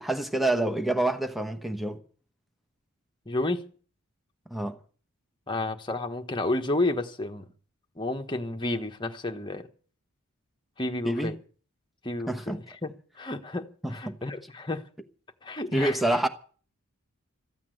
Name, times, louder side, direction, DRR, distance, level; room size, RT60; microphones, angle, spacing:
voice 1, 0.0-2.0 4.5-4.8 11.0-11.3 12.3-12.6 13.8-14.2 15.7-16.3, right 1 dB, ahead, 1.1 m, -27 dB
voice 2, 3.3-3.7 5.5-7.5 8.0-9.7 10.8-11.4 12.0-14.8 15.4-16.2, left 2 dB, 20° left, 1.3 m, -31 dB
14.5 x 8.5 x 9.4 m
head